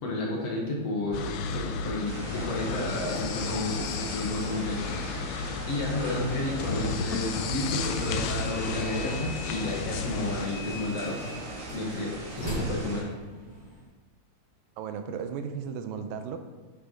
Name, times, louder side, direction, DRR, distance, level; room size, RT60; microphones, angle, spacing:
voice 1, 0.0-11.2 11.7-13.1, left 2 dB, 55° left, -2 dB, 2.1 m, -32 dB
sound 1, 1.1-10.5, left 4 dB, 85° left, 1.6 m, -33 dB
sound 2, 2.1-13.0, right 2 dB, 60° right, 2.6 m, -42 dB
sound 3, 8.0-13.8, equal, 15° right, 0.5 m, -40 dB
voice 2, 14.8-16.4, right 7 dB, 85° right, 8 dB, 2.4 m, -35 dB
9.7 x 5.8 x 3.9 m, 1.3 s
omnidirectional pair, 4.0 m